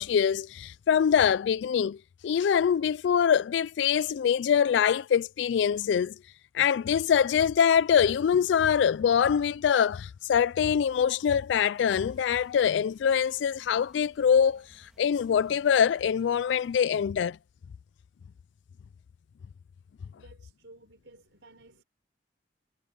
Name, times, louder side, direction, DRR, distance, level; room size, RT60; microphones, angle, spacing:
voice 1, 0.0-2.0 2.2-6.1 6.5-17.4, left 8 dB, 70° left, 0.3 m, -24 dB
sound 1, 11.9-16.9, equal, 5° right, 2.7 m, -63 dB
voice 2, 20.1-21.8, right 2 dB, 70° right, 4.5 m, -54 dB
head